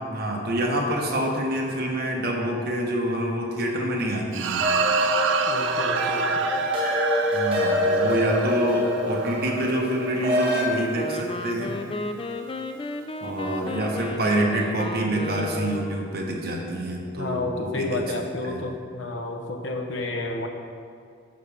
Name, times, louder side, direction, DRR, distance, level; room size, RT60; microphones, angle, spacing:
voice 1, 0.1-4.7 7.3-11.7 13.2-18.0 18.4-18.6, right 1 dB, 55° right, -1 dB, 1.3 m, -27 dB
sound 1, 4.3-10.9, right 6 dB, 80° right, 0.5 m, -29 dB
sound 2, 4.6-10.6, left 1 dB, 30° right, 1.6 m, -25 dB
voice 2, 5.5-6.5 17.2-20.5, left 2 dB, 85° left, 3 dB, 1.0 m, -30 dB
Wind instrument woodwind instrument, 10.9-16.1, left 2 dB, 30° left, 0.4 m, -33 dB
10.5 x 7.2 x 3.5 m, 2.3 s
head